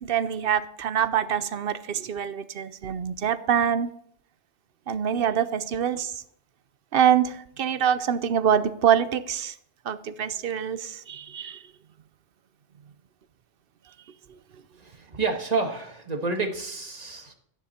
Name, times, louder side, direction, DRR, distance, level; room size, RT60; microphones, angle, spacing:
voice 1, 0.0-3.9 4.9-6.1 6.9-9.5 9.9-11.6, right 8 dB, 55° right, 13 dB, 0.8 m, -25 dB
voice 2, 14.8-17.3, right 4 dB, 35° right, 4 dB, 1.5 m, -29 dB
12.5 x 10.0 x 4.3 m, 0.67 s
omnidirectional pair, 1.2 m